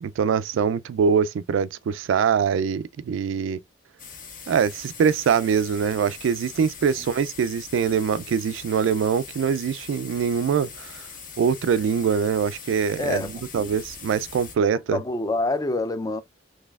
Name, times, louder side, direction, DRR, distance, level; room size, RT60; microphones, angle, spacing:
voice 1, 0.0-3.6 4.5-11.0 11.4-13.3 13.5-15.0, right 6 dB, 80° right, 0.3 m, -23 dB
sound 1, 4.0-14.5, left 6 dB, 50° left, 1.1 m, -41 dB
voice 2, 13.0-13.7 14.7-16.2, left 2 dB, 20° left, 0.4 m, -27 dB
4.0 x 3.2 x 2.3 m
head